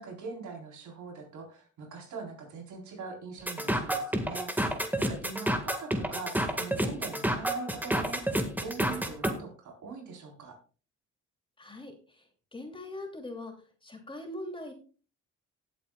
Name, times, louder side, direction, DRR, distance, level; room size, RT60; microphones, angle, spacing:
voice 1, 0.0-4.5 5.0-10.6, right 4 dB, 75° right, 1 dB, 3.9 m, -42 dB
sound 1, 3.5-9.3, right 1 dB, 5° right, 1.6 m, -29 dB
voice 2, 11.6-13.5 13.8-14.7, left 1 dB, 15° left, 3 dB, 2.8 m, -42 dB
18.5 x 8.5 x 2.3 m, 0.39 s
cardioid pair, 90°, 30 cm